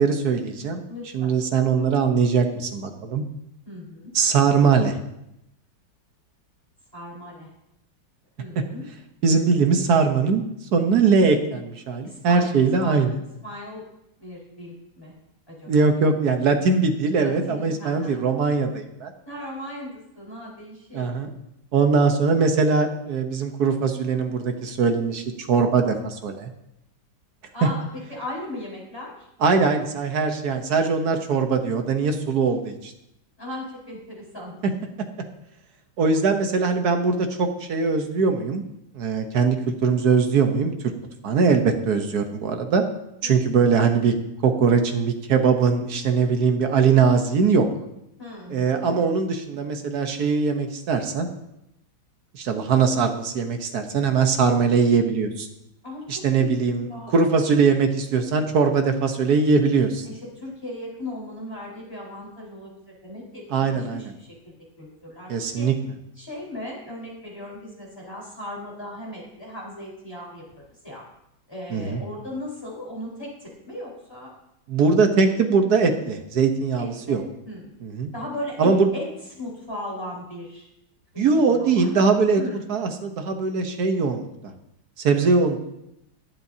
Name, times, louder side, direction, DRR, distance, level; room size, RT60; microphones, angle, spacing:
voice 1, 0.0-0.8 1.1-3.2 4.1-5.0 9.2-10.4 10.7-13.2 15.7-19.1 20.9-21.3 21.7-26.5 29.4-32.9 36.0-38.6 38.9-40.7 41.2-42.8 43.2-44.1 44.4-47.7 48.5-51.3 52.3-55.5 56.1-56.9 57.1-60.1 63.5-64.0 65.3-65.7 71.7-72.0 74.7-77.2 77.8-78.1 78.6-78.9 81.2-82.4 82.7-84.5 85.0-85.6, right 5 dB, 60° right, 6 dB, 1.5 m, -21 dB
voice 2, 0.9-1.4 3.6-4.1 6.9-7.5 8.4-8.8 12.0-12.5 12.8-13.0 13.4-13.8 14.2-15.1 15.5-15.9 17.1-18.2 19.2-21.1 27.5-29.3 33.4-34.6 43.2-43.5 48.2-49.0 55.8-57.2 60.0-65.7 66.2-71.0 71.5-74.3 76.8-77.2 77.4-77.7 78.1-79.1 79.3-80.7 81.1-81.2 81.5-82.1 82.4-82.6, left 1 dB, 10° left, -5 dB, 4.5 m, -37 dB
22.5 x 7.6 x 2.8 m, 0.84 s
omnidirectional pair, 2.1 m